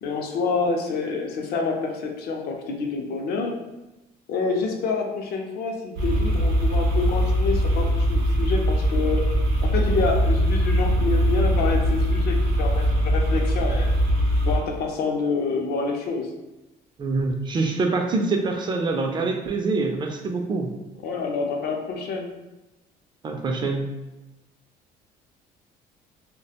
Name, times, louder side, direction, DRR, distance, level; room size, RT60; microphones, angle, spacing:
voice 1, 0.0-3.6 4.3-9.2 9.6-14.0 14.5-16.3 21.0-22.3, left 4 dB, 65° left, 2 dB, 0.5 m, -27 dB
sound 1, 6.0-14.6, equal, 90° right, 0.6 m, -21 dB
voice 2, 17.0-20.7 23.2-23.9, right 3 dB, 25° right, 3 dB, 0.3 m, -25 dB
2.4 x 2.1 x 2.7 m, 1.0 s
cardioid pair, 110°, 17 cm